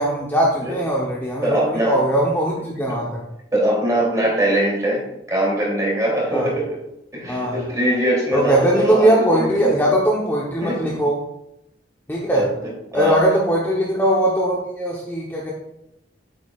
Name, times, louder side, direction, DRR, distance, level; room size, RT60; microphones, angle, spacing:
voice 1, 0.0-3.2 6.3-6.5 7.2-7.6 8.3-11.2 12.1-12.5 12.9-15.5, right 1 dB, 10° left, -4 dB, 0.9 m, -20 dB
voice 2, 1.4-2.0 2.9-3.0 3.5-6.8 7.1-9.9 10.6-10.9 12.3-13.3, right 1 dB, 20° right, -4 dB, 2.9 m, -22 dB
8.7 x 7.8 x 2.4 m, 0.83 s
head